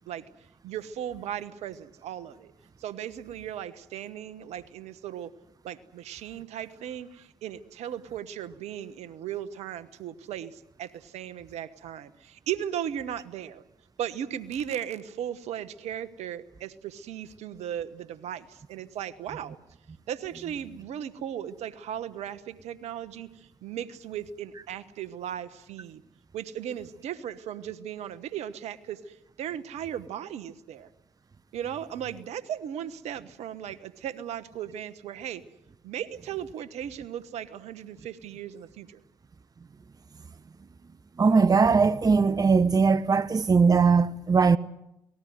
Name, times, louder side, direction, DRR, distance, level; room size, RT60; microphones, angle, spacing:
voice 1, 0.6-2.5 2.8-5.3 5.6-13.6 14.0-19.6 20.1-26.0 26.3-30.9 31.5-35.4 35.8-39.0, right 10 dB, 70° right, 1.3 m, -37 dB
voice 2, 41.2-44.6, right 5 dB, 30° right, 0.9 m, -20 dB
29.5 x 20.0 x 8.0 m
hypercardioid pair, 45°, 12 cm